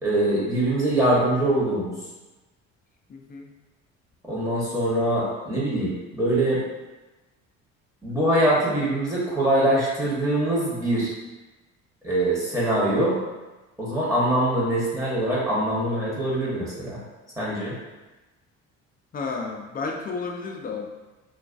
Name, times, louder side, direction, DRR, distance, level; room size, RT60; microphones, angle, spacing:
voice 1, 0.0-1.9 4.2-6.6 8.0-11.1 12.0-13.2 13.8-17.0 17.4-17.8, right 1 dB, 10° right, -7 dB, 0.9 m, -23 dB
voice 2, 3.1-3.5 19.1-20.9, left 4 dB, 30° left, 1 dB, 0.4 m, -32 dB
2.3 x 2.2 x 2.4 m, 1.1 s
supercardioid pair, 65°, 32 cm